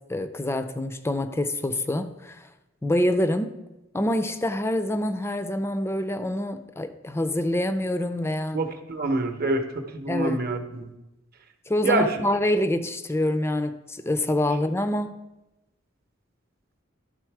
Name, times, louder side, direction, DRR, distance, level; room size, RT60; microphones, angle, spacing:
voice 1, 0.1-2.5 2.8-3.6 3.9-8.6 10.1-10.4 11.7-15.2, left 1 dB, 15° left, 11 dB, 0.4 m, -26 dB
voice 2, 8.5-10.9 11.8-12.2, right 2 dB, 50° right, 7 dB, 0.8 m, -26 dB
12.0 x 4.0 x 4.6 m, 0.97 s
head